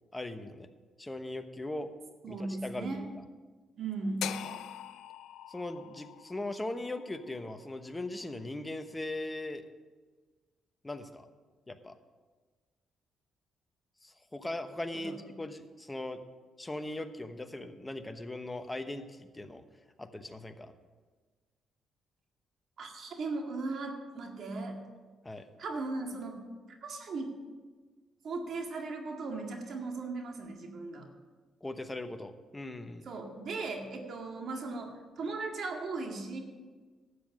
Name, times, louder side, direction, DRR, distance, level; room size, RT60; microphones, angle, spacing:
voice 1, 0.1-0.7 1.0-1.9 2.3-3.1 4.4-4.5 5.5-9.6 10.8-11.3 11.7-11.9 14.0-16.2 16.6-19.6 20.0-20.7 25.2-25.4 31.6-33.1, left 2 dB, 15° left, 8 dB, 1.0 m, -39 dB
voice 2, 2.2-3.0 3.8-4.3 14.9-15.2 22.8-24.8 25.6-26.4 26.7-27.3 28.2-31.1 33.1-36.4, right 3 dB, 60° right, 3 dB, 1.9 m, -37 dB
sound 1, 4.2-8.3, left 11 dB, 85° left, 0.4 m, -43 dB
12.5 x 7.4 x 6.2 m, 1.4 s
cardioid pair, 90°, 0 cm